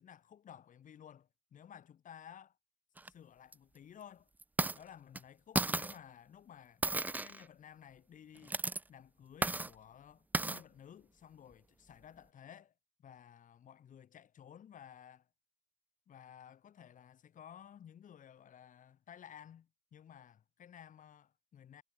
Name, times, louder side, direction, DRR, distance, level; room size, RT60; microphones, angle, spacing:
voice 1, 0.0-2.6 3.1-4.3 4.7-6.8 7.2-8.6 8.9-12.7 13.0-15.3 16.1-21.8, left 9 dB, 50° left, 6.9 m, -55 dB
sound 1, 3.0-3.1 3.5-3.6 4.4-4.8 5.1-5.2 5.6-6.0 6.8-7.4 8.4-8.8 9.4-9.7 10.3-10.6, right 2 dB, 10° right, 0.5 m, -34 dB
cardioid pair, 110°, 17 cm